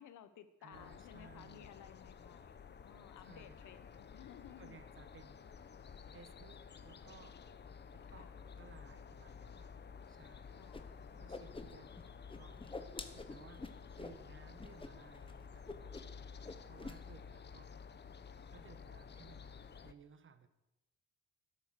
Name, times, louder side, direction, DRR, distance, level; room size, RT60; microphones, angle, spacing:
voice 1, 0.0-4.8 8.1-8.4 10.6-11.0 11.3-11.9, left 10 dB, 80° left, 12 dB, 1.2 m, -57 dB
voice 2, 0.6-1.7 3.2-3.8 4.6-5.5 6.1-7.4 7.9-9.7 10.1-10.5 11.2-12.6 13.1-13.7 13.9-15.7 16.7-17.7 18.5-20.5, right 5 dB, 40° right, 11 dB, 1.3 m, -60 dB
sound 1, 0.7-19.9, left 6 dB, 35° left, 0.8 m, -53 dB
Whoosh swoosh swish, 10.7-10.8 11.1-12.0 12.3-14.2 14.6-14.9 15.1-15.3 15.7-16.2 16.4-17.0, left 3 dB, 15° left, 1.1 m, -47 dB
12.5 x 10.0 x 6.6 m, 0.98 s
cardioid pair, 90°, 30 cm